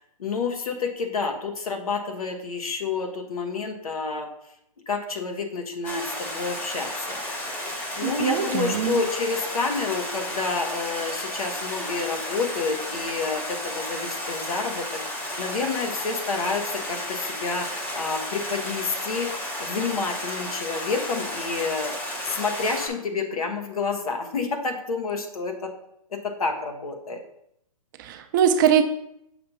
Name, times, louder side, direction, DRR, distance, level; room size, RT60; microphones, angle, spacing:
voice 1, 0.0-4.3 4.9-7.2 7.7-25.7 26.1-27.2, left 4 dB, 75° left, 4 dB, 1.3 m, -29 dB
Stream, 5.8-22.9, left 1 dB, 10° left, 0.7 m, -33 dB
voice 2, 8.0-9.0 28.0-28.8, right 9 dB, 35° right, 7 dB, 0.5 m, -22 dB
6.6 x 2.8 x 5.5 m, 0.75 s
hypercardioid pair, 140°, 19 cm